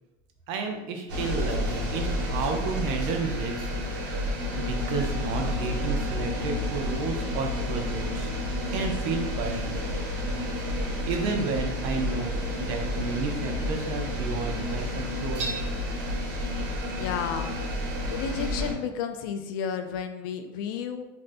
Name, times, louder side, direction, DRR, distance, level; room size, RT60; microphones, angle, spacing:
voice 1, 0.5-4.3 4.6-8.3 8.7-9.8 11.1-15.5, right 4 dB, 55° right, 3 dB, 0.5 m, -32 dB
sound 1, 1.1-18.7, left 1 dB, 80° right, 1.0 m, -30 dB
voice 2, 17.0-17.5 18.1-21.1, left 7 dB, 80° left, 7 dB, 0.4 m, -32 dB
2.6 x 2.5 x 3.3 m, 1.0 s
cardioid pair, 170°, 11 cm